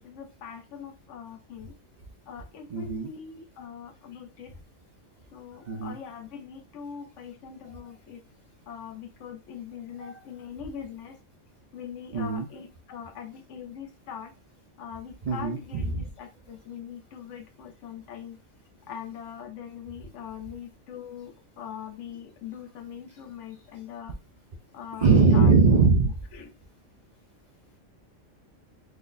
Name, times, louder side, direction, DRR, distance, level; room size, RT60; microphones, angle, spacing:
voice 1, 0.0-1.7 2.3-4.5 5.3-8.2 8.7-11.2 11.7-14.3 14.8-18.4 18.9-24.1 24.7-25.6 26.3-26.5, left 8 dB, 70° left, 6 dB, 0.9 m, -42 dB
voice 2, 2.7-3.1 5.6-5.9 10.0-10.1 12.1-12.5 15.2-15.6 15.9-16.0 25.0-26.1, right 4 dB, 55° right, 1 dB, 0.5 m, -20 dB
3.8 x 2.6 x 2.5 m, 0.29 s
omnidirectional pair, 1.3 m